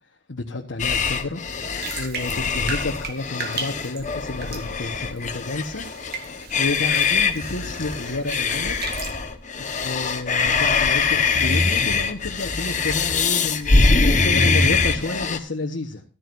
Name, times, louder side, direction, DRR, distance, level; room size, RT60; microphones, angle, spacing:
voice 1, 0.3-1.4 1.9-5.9 6.5-8.7 9.5-16.0, left 2 dB, 85° left, 0 dB, 1.3 m, -30 dB
sound 1, 0.8-15.4, left 4 dB, 40° left, 1.3 m, -23 dB
Bathtub (filling or washing), 1.8-9.1, right 5 dB, 55° right, 1.8 m, -37 dB
14.0 x 14.0 x 2.6 m, 0.36 s
head